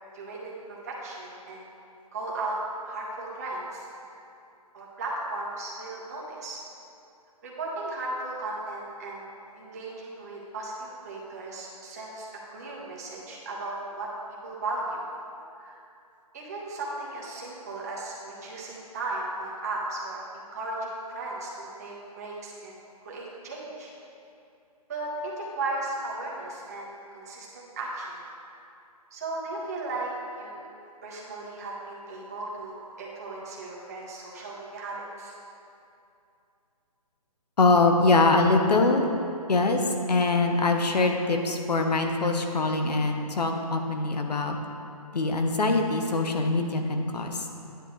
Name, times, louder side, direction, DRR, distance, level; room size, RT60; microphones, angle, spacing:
voice 1, 0.1-0.5 0.8-1.6 2.1-2.6 2.8-3.9 4.7-6.6 7.4-9.3 9.6-14.1 14.4-15.0 15.6-15.8 16.3-22.8 23.0-23.9 24.9-28.1 29.1-30.7 31.0-35.3, right 2 dB, 25° right, -4 dB, 1.4 m, -36 dB
voice 2, 37.6-39.1 39.5-39.8 40.1-44.6 45.1-47.5, left 3 dB, 85° left, 4 dB, 1.2 m, -23 dB
10.0 x 9.7 x 3.3 m, 2.6 s
hypercardioid pair, 175°, 20 cm